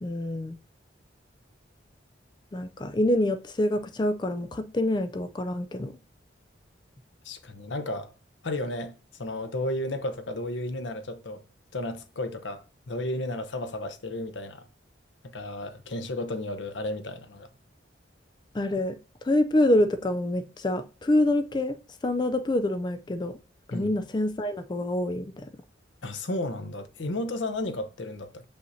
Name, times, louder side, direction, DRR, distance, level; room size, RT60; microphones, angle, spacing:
voice 1, 0.0-0.6 2.5-6.0 18.5-21.8 22.0-23.4 23.7-25.5, left 1 dB, 25° left, 0.4 m, -26 dB
voice 2, 7.2-8.1 8.4-11.4 11.7-14.6 15.3-17.5 23.7-23.9 26.0-28.4, left 1 dB, 80° left, 0.8 m, -33 dB
6.4 x 5.4 x 2.7 m
head